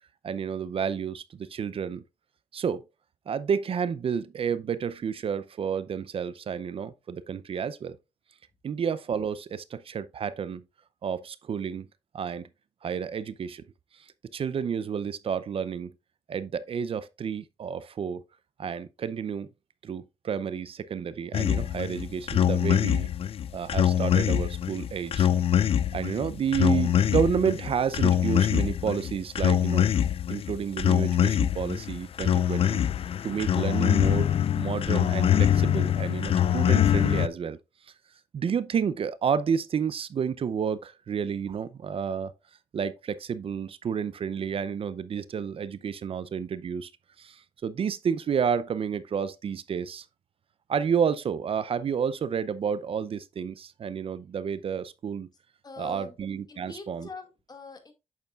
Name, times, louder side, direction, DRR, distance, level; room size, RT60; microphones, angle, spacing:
voice 1, 0.2-2.0 2.5-2.8 3.3-8.0 8.6-10.6 11.0-11.9 12.1-12.5 12.8-13.6 13.9-14.1 14.3-15.9 16.3-18.2 18.6-19.5 19.8-23.1 23.5-25.3 25.9-29.9 30.3-32.9 33.2-37.6 38.3-42.3 42.7-46.9 47.2-50.1 50.7-55.3 55.8-57.1, right 7 dB, 55° right, 0.5 m, -30 dB
sound 1, 21.3-37.3, left 10 dB, 60° left, 0.4 m, -24 dB
voice 2, 55.6-56.2 56.5-57.9, left 3 dB, 35° left, 2.0 m, -43 dB
8.2 x 6.8 x 2.4 m
cardioid pair, 70°, 11 cm